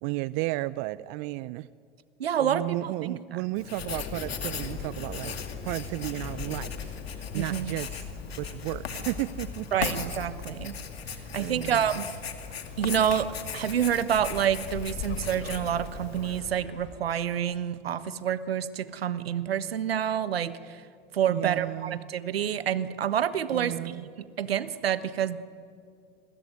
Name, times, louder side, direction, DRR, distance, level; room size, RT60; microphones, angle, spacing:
voice 1, 0.0-1.7 2.4-5.3 5.6-8.0 8.4-9.7 11.3-12.0 21.3-22.1 23.5-24.0, right 19 dB, 50° right, 19 dB, 0.7 m, -33 dB
voice 2, 2.2-3.4 7.3-7.7 9.7-10.7 11.3-12.1 12.8-20.8 21.1-24.0 24.4-25.4, right 9 dB, 80° right, 14 dB, 1.4 m, -28 dB
Writing, 3.6-16.4, left 6 dB, 80° left, 2.4 m, -39 dB
sound 1, 3.8-17.0, left 6 dB, 40° left, 4.1 m, -41 dB
28.5 x 21.5 x 9.5 m, 2.3 s
figure-of-eight pair, 85°, 30 cm